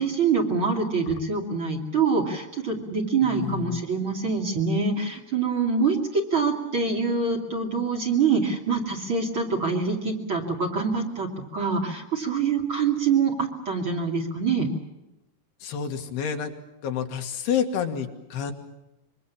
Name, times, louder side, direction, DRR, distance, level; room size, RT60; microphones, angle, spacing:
voice 1, 0.0-11.3 11.5-14.7, right 5 dB, 35° right, 1 dB, 2.9 m, -25 dB
voice 2, 3.2-3.8 15.6-16.5 16.8-18.5, left 8 dB, 75° left, 4 dB, 3.7 m, -29 dB
25.5 x 24.0 x 7.4 m, 0.93 s
omnidirectional pair, 4.7 m